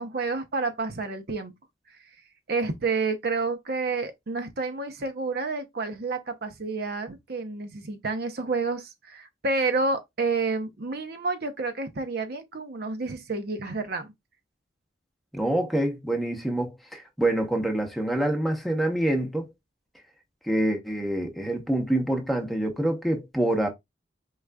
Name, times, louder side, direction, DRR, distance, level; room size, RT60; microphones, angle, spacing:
voice 1, 0.0-1.5 2.5-14.1, right 3 dB, 60° right, 0.8 m, -29 dB
voice 2, 15.3-19.5 20.5-23.7, right 1 dB, ahead, 0.9 m, -26 dB
4.8 x 3.8 x 2.3 m
head